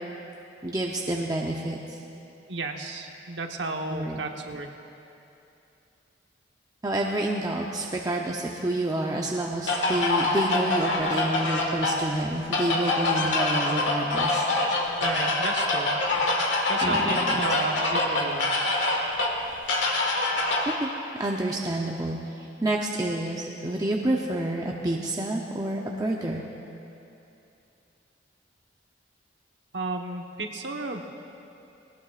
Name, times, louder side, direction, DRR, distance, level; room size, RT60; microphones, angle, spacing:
voice 1, 0.6-2.0 3.9-4.2 6.8-14.4 16.8-17.4 20.8-20.9 21.2-26.5, right 1 dB, 20° right, -1 dB, 0.7 m, -29 dB
voice 2, 2.5-4.7 13.2-13.3 15.0-15.9 16.7-18.8 29.7-31.0, right 3 dB, 75° right, 2 dB, 1.2 m, -33 dB
sound 1, 9.7-20.7, left 2 dB, 85° left, 1.7 m, -25 dB
19.5 x 18.5 x 2.5 m, 2.8 s
head